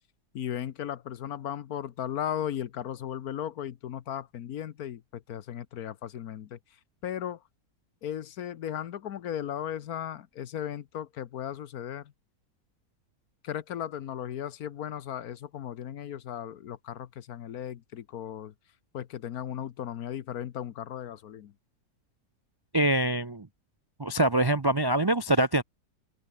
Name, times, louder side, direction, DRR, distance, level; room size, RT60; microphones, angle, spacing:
voice 1, 0.3-6.6 7.0-7.4 8.0-12.1 13.4-18.5 18.9-21.5, left 10 dB, 65° left, 1.3 m, -36 dB
voice 2, 22.7-23.5 24.0-25.6, right 1 dB, 40° right, 0.3 m, -24 dB
omnidirectional pair, 1.7 m